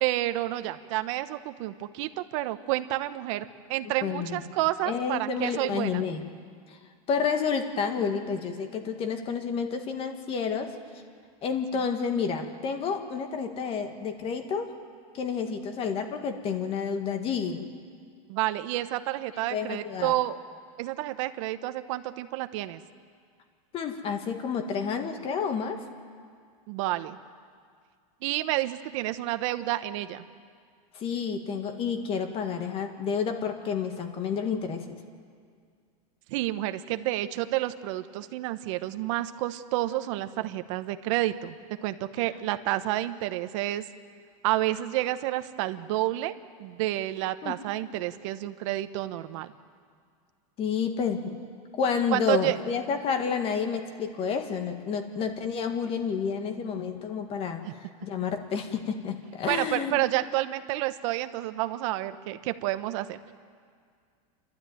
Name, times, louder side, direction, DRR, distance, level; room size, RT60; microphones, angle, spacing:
voice 1, 0.0-3.4 3.7-6.0 18.3-20.4 20.8-22.8 26.7-27.2 28.2-30.2 36.3-41.6 41.8-43.8 44.4-46.3 46.6-49.5 52.1-52.6 57.6-57.7 59.5-63.2, right 16 dB, 55° right, 10 dB, 1.1 m, -29 dB
voice 2, 4.0-4.4 4.9-6.2 6.7-6.8 7.1-10.8 11.4-14.7 15.1-17.7 19.5-20.2 23.7-25.8 30.9-34.9 47.4-47.6 50.6-51.4 51.7-57.6 58.0-60.1, left 6 dB, 30° left, 6 dB, 1.9 m, -30 dB
29.5 x 12.5 x 9.3 m, 2.1 s
supercardioid pair, 155°, 19 cm